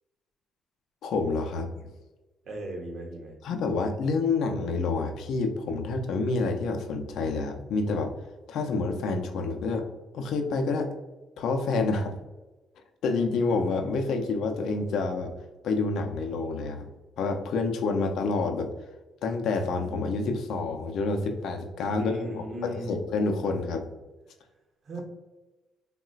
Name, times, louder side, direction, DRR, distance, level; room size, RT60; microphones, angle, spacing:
voice 1, 1.0-1.7 3.4-8.1 8.5-9.8 10.1-10.9 11.4-12.2 13.0-15.3 15.6-16.9 17.2-18.7 19.2-23.9, left 3 dB, 80° left, 4 dB, 0.4 m, -28 dB
voice 2, 2.4-3.4 21.9-23.0 24.8-25.0, right 1 dB, 55° right, 0 dB, 0.9 m, -37 dB
3.9 x 2.1 x 2.3 m, 1.1 s
cardioid pair, 90°, 0 cm